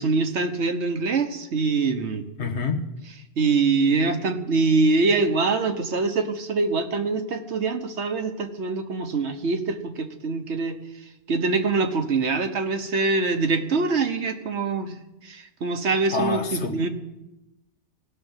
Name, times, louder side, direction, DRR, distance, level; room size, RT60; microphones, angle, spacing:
voice 1, 0.0-2.2 3.4-10.8 11.3-15.0 15.2-16.9, right 3 dB, 75° right, 7 dB, 1.4 m, -24 dB
voice 2, 2.4-2.8 3.9-4.0 16.1-16.9, left 4 dB, 75° left, 4 dB, 1.6 m, -27 dB
16.5 x 6.9 x 9.0 m, 0.95 s
omnidirectional pair, 1.2 m